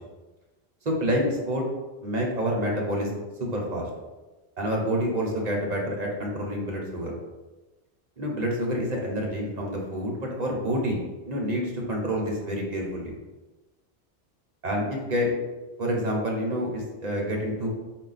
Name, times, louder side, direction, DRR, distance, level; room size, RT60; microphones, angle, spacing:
voice 1, 0.8-1.6 2.0-3.9 4.6-7.1 8.2-13.2 14.6-15.3 15.8-17.7, equal, 45° right, -1 dB, 0.9 m, -28 dB
4.8 x 2.4 x 4.0 m, 1.2 s
omnidirectional pair, 1.1 m